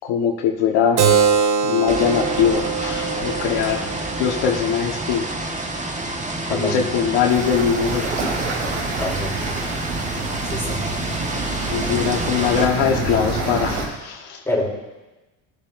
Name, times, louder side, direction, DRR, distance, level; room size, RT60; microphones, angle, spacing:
voice 1, 0.1-1.0 1.6-3.8 4.2-5.2 6.5-8.1 11.7-14.2, left 7 dB, 70° left, 1 dB, 1.5 m, -21 dB
Keyboard (musical), 1.0-6.1, right 6 dB, 50° right, 1.4 m, -23 dB
sound 1, 1.9-12.7, right 2 dB, 15° right, 1.5 m, -29 dB
voice 2, 6.5-6.9 9.0-9.4 10.4-10.8 11.7-12.1 14.4-14.7, left 1 dB, 5° left, -3 dB, 3.3 m, -26 dB
sound 2, 7.3-13.9, right 3 dB, 85° right, 3.4 m, -27 dB
21.0 x 7.2 x 2.6 m, 1.1 s
supercardioid pair, 95°, 41 cm